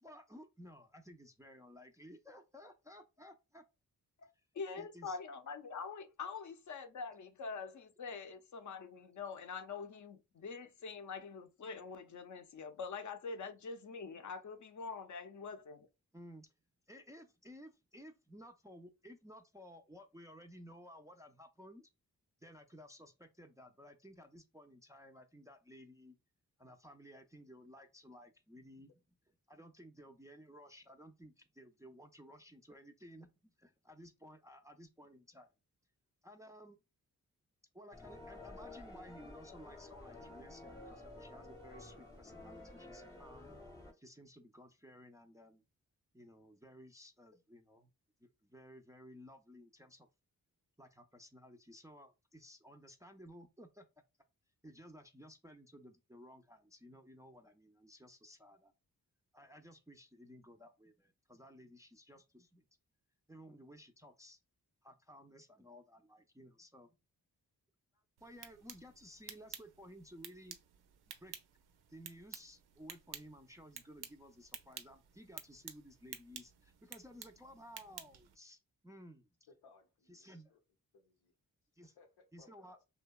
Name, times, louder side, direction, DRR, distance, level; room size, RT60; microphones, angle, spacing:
voice 1, 0.0-3.6 4.7-5.2 16.1-16.5 16.9-21.9 22.4-26.2 26.6-28.9 29.3-35.5 36.2-36.8 37.7-43.5 43.9-45.6 46.1-47.9 48.2-50.1 50.8-53.9 54.6-58.7 59.3-62.6 63.3-64.4 64.8-67.0 68.2-70.6 71.2-71.3 71.9-79.3 80.1-80.5 81.8-81.9 82.3-82.8, equal, 10° right, 0.3 m, -56 dB
voice 2, 4.5-15.9, left 5 dB, 50° left, 0.5 m, -45 dB
sound 1, 37.9-43.9, left 2 dB, 10° left, 0.8 m, -52 dB
sound 2, 68.2-78.4, right 8 dB, 80° right, 0.5 m, -52 dB
voice 3, 79.6-80.6 80.9-81.3 82.0-82.7, left 4 dB, 90° left, 0.7 m, -65 dB
2.7 x 2.1 x 2.2 m
cardioid pair, 45°, 38 cm